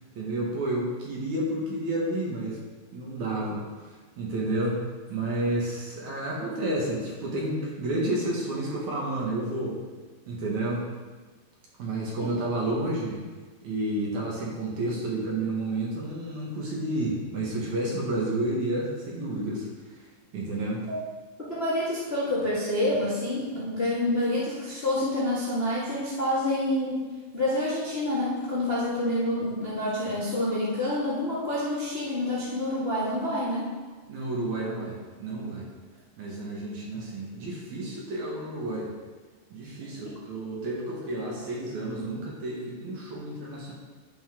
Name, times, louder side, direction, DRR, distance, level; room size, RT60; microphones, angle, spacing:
voice 1, 0.2-2.6 2.9-3.6 4.2-4.8 5.1-9.8 10.3-10.8 11.8-13.2 13.6-19.7 20.3-20.8 34.1-35.7 36.2-38.9 39.5-43.7, right 1 dB, 55° right, -4 dB, 2.5 m, -30 dB
voice 2, 21.5-27.0 27.3-33.7, left 1 dB, 75° left, -9 dB, 0.5 m, -27 dB
11.5 x 5.7 x 3.7 m, 1.4 s
omnidirectional pair, 4.6 m